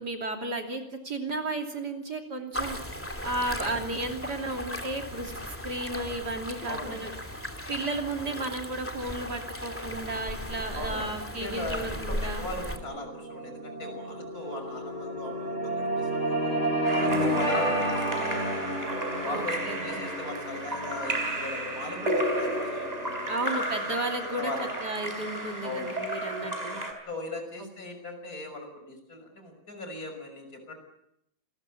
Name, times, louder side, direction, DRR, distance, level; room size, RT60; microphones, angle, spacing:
voice 1, 0.0-2.8 3.0-7.1 7.7-12.5 17.2-17.8 19.2-20.0 23.3-24.5 24.8-26.8, right 2 dB, 55° right, 3 dB, 3.5 m, -34 dB
sound 1, 2.5-12.8, equal, 5° left, 2.7 m, -37 dB
voice 2, 6.6-7.1 10.7-11.1 11.4-16.6 17.0-18.4 19.1-23.4 24.4-24.7 25.6-26.1 27.1-30.7, left 2 dB, 45° left, 5 dB, 6.6 m, -38 dB
sound 2, 11.3-23.9, right 1 dB, 35° right, 4.8 m, -32 dB
Splash splatter / Drip / Trickle dribble, 16.8-26.9, right 1 dB, 20° right, 4.5 m, -33 dB
28.0 x 21.0 x 8.4 m, 0.79 s
omnidirectional pair, 2.1 m